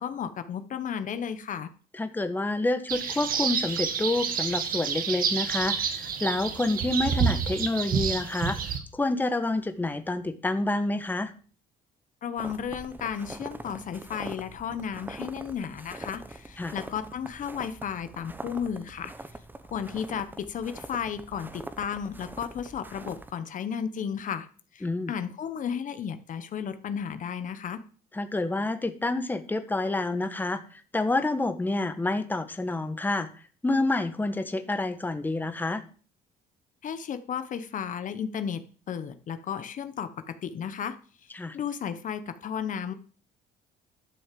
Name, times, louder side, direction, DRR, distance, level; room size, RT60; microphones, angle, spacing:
voice 1, 0.0-1.7 12.2-19.1 19.7-24.5 24.7-27.8 36.8-38.6 38.9-41.0 41.2-42.9, left 7 dB, 50° left, 10 dB, 1.1 m, -34 dB
voice 2, 1.9-8.6 8.9-11.3 16.6-16.7 24.8-25.1 28.1-33.3 33.6-35.8 41.3-41.6, left 2 dB, 10° left, 9 dB, 1.2 m, -28 dB
sound 1, 2.9-8.8, right 7 dB, 55° right, 2.0 m, -29 dB
sound 2, 12.4-23.3, right 2 dB, 10° right, 1.1 m, -43 dB
12.0 x 6.4 x 7.6 m, 0.40 s
cardioid pair, 110°, 17 cm